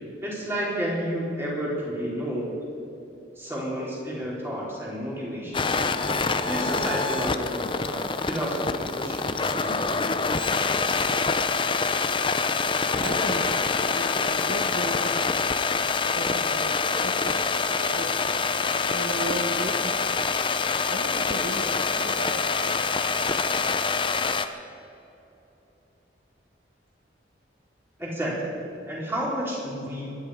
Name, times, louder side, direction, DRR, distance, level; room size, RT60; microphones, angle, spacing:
voice 1, 0.2-2.5 3.4-5.7 6.5-10.1 28.0-28.6 28.9-30.2, equal, 15° right, -5 dB, 4.4 m, -31 dB
sound 1, 5.5-24.5, left 4 dB, 25° left, 0.6 m, -26 dB
voice 2, 12.7-15.2 16.1-20.2 20.9-22.9, right 1 dB, 85° right, 4 dB, 1.6 m, -36 dB
24.5 x 11.0 x 5.2 m, 3.0 s
head